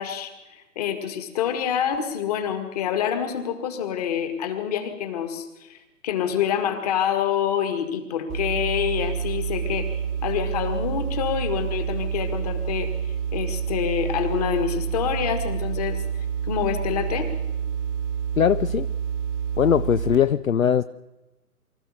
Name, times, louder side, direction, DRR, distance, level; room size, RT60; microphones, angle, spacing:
voice 1, 0.0-17.3, left 9 dB, 25° left, 8 dB, 2.0 m, -27 dB
sound 1, 8.3-20.2, right 7 dB, 10° right, 1.1 m, -28 dB
voice 2, 18.4-18.9 19.6-20.8, left 8 dB, 60° left, 15 dB, 0.6 m, -20 dB
24.5 x 14.0 x 8.0 m, 1.0 s
figure-of-eight pair, 145°, 46 cm